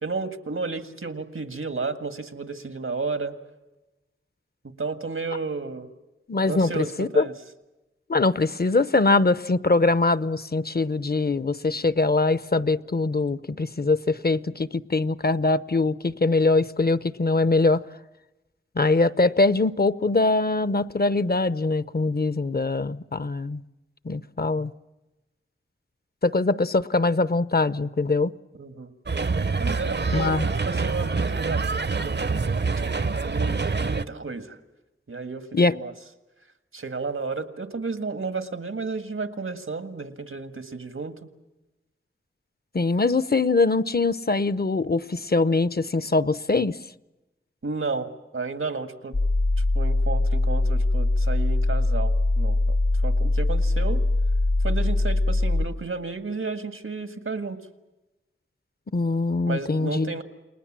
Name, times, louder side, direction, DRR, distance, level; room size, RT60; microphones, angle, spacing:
voice 1, 0.0-3.4 4.8-5.9 6.5-7.3 28.6-28.9 29.6-30.4 30.7-32.5 32.9-34.6 35.1-35.9 36.7-41.1 47.6-49.2 49.6-52.8 53.0-54.0 54.6-57.6 59.5-60.2, right 4 dB, 90° right, 1.8 m, -32 dB
voice 2, 6.3-7.3 8.1-17.8 18.8-23.6 24.0-24.7 26.2-28.3 30.1-30.4 35.5-35.7 42.7-46.8 58.9-60.1, left 3 dB, 50° left, 0.8 m, -22 dB
sound 1, 29.1-34.0, right 4 dB, 55° right, 0.8 m, -26 dB
sound 2, 49.1-55.7, left 2 dB, 70° left, 1.8 m, -22 dB
29.5 x 20.0 x 7.5 m
wide cardioid pair, 50°, 21 cm